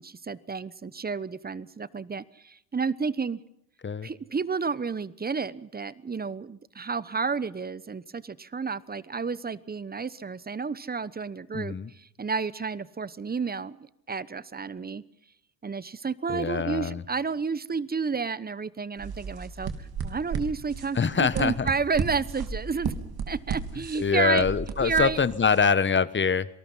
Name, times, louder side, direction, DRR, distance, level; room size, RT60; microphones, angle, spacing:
voice 1, 0.0-3.4 4.0-11.7 12.2-15.0 15.6-22.9 23.3-24.4 24.8-25.2, right 5 dB, 20° right, 19 dB, 1.0 m, -31 dB
voice 2, 11.5-11.9 16.3-17.0 20.9-21.7 23.9-26.5, left 6 dB, 25° left, 17 dB, 1.2 m, -24 dB
sound 1, 19.0-25.6, right 5 dB, 50° right, 3.4 m, -34 dB
27.0 x 19.0 x 5.7 m, 0.78 s
supercardioid pair, 75°, 48 cm